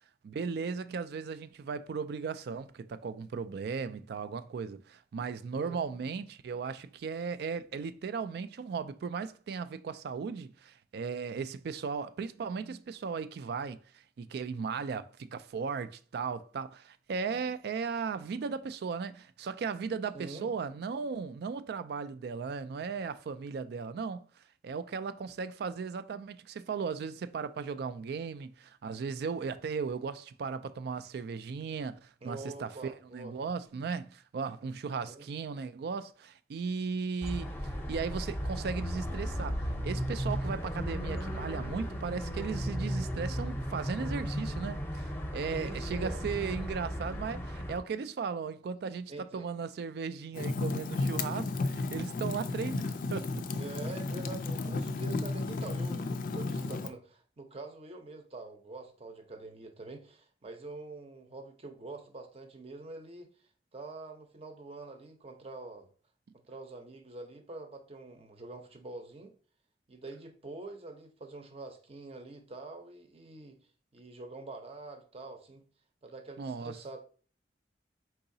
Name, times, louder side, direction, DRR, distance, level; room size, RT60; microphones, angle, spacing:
voice 1, 0.2-13.8 14.2-24.2 24.6-37.5 37.9-53.5 76.4-76.7, right 5 dB, 60° right, 0.3 m, -36 dB
voice 2, 20.1-20.5 32.2-33.3 35.0-35.3 45.5-46.6 49.1-49.5 53.5-63.3 63.7-65.9 66.5-69.3 69.9-73.6 73.9-75.6 76.0-77.0, right 3 dB, 35° right, 0.7 m, -45 dB
sound 1, 37.2-47.8, equal, 10° left, 0.7 m, -35 dB
Fire, 50.3-56.9, left 3 dB, 50° left, 0.4 m, -33 dB
4.6 x 3.9 x 2.7 m
head